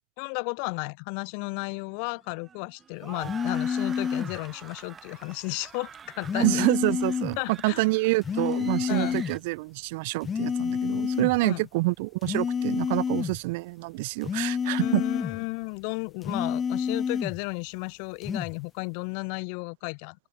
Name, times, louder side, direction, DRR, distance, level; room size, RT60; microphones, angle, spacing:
voice 1, 0.2-6.7 7.4-7.9 8.9-9.2 11.4-11.7 14.8-20.2, left 40 dB or more, 60° left, 4.7 m, -33 dB
sound 1, 1.4-9.4, right 7 dB, 25° right, 3.1 m, -47 dB
sound 2, 3.2-4.4 6.2-7.4 8.2-9.4 10.2-11.4 12.2-13.4 14.2-15.4 16.2-17.4 18.2-18.5, left 7 dB, 25° left, 2.1 m, -29 dB
voice 2, 6.3-15.0, right 24 dB, 65° right, 0.8 m, -27 dB
open air
hypercardioid pair, 110°, 0 cm